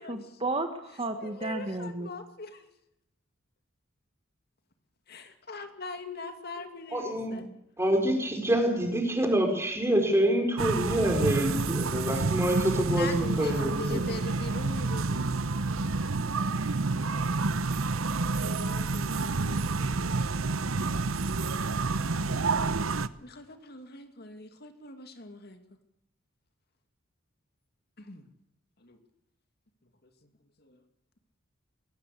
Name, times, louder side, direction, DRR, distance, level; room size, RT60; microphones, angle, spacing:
voice 1, 0.1-2.1, right 2 dB, 30° right, 7 dB, 1.6 m, -33 dB
voice 2, 1.2-2.7 5.1-7.4 12.9-15.4 18.4-20.2 23.2-25.6 28.0-28.2 28.8-29.0 30.6-30.8, left 2 dB, 50° left, 7 dB, 2.4 m, -42 dB
voice 3, 6.9-7.4 7.8-14.1, right 1 dB, 15° right, 4 dB, 4.4 m, -26 dB
sound 1, 10.6-23.1, right 3 dB, 90° right, 0.9 m, -29 dB
22.0 x 17.0 x 8.4 m, 0.81 s
head